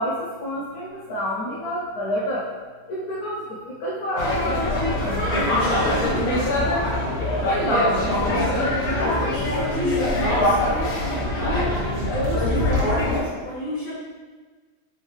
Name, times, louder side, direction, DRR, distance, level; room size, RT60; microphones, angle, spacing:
voice 1, 0.0-2.5 2.9-6.0 6.2-7.0 7.4-8.2, equal, 75° left, -5 dB, 0.8 m, -28 dB
sound 1, 4.2-13.2, left 1 dB, 50° left, 1.3 m, -23 dB
voice 2, 8.9-14.0, left 1 dB, 15° left, -9 dB, 0.9 m, -30 dB
3.5 x 3.3 x 3.2 m, 1.4 s
omnidirectional pair, 2.2 m